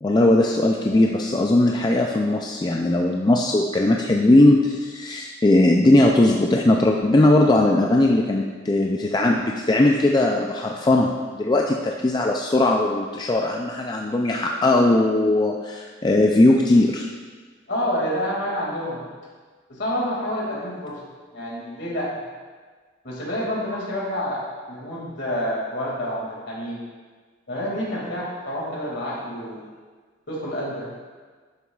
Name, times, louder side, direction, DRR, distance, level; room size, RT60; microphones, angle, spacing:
voice 1, 0.0-17.1, left 2 dB, 20° left, 1 dB, 0.3 m, -19 dB
voice 2, 17.7-19.0 19.7-21.0 21.3-22.2 23.0-26.8 27.5-29.6 30.3-30.9, equal, 60° left, -4 dB, 2.2 m, -28 dB
11.0 x 6.9 x 2.4 m, 1.5 s
head